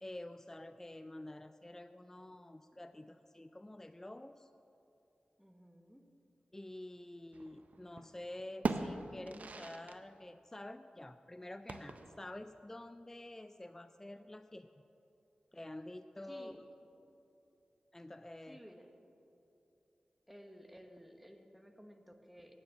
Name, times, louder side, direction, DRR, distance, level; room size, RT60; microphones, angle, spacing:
voice 1, 0.0-4.5 6.5-14.7 15.5-16.5 17.9-18.6, left 1 dB, 15° left, 10 dB, 0.3 m, -48 dB
voice 2, 5.4-6.0 16.3-16.6 18.5-18.9 20.3-22.5, equal, 5° right, 5 dB, 1.1 m, -55 dB
sound 1, 7.3-8.1 8.4-10.0 10.3-10.4 11.7-12.3, right 3 dB, 65° right, 0.6 m, -40 dB
9.4 x 7.0 x 7.6 m, 2.8 s
cardioid pair, 50°, 3 cm